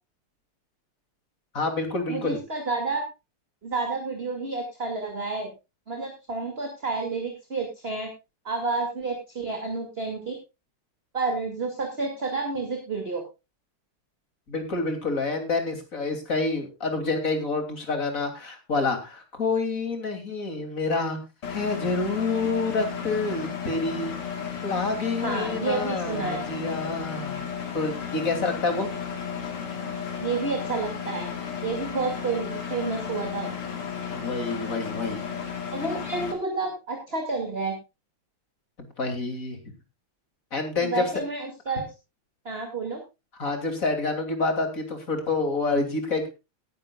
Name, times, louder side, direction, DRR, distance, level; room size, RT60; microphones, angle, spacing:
voice 1, 1.5-2.4 14.5-21.2 21.5-24.1 24.6-27.5 27.7-28.9 34.1-35.2 38.8-39.7 40.5-41.0 43.4-46.3, left 3 dB, 40° left, 6 dB, 3.2 m, -28 dB
voice 2, 2.1-3.0 3.6-5.5 5.9-8.1 8.4-10.4 11.1-13.2 25.2-26.4 30.2-31.3 31.6-33.5 35.7-37.8 40.8-41.9 42.4-43.0, right 3 dB, 25° right, 2 dB, 2.6 m, -30 dB
Engine, 21.4-36.3, left 7 dB, 80° left, 3.3 m, -34 dB
18.5 x 11.5 x 2.4 m, 0.27 s
omnidirectional pair, 2.4 m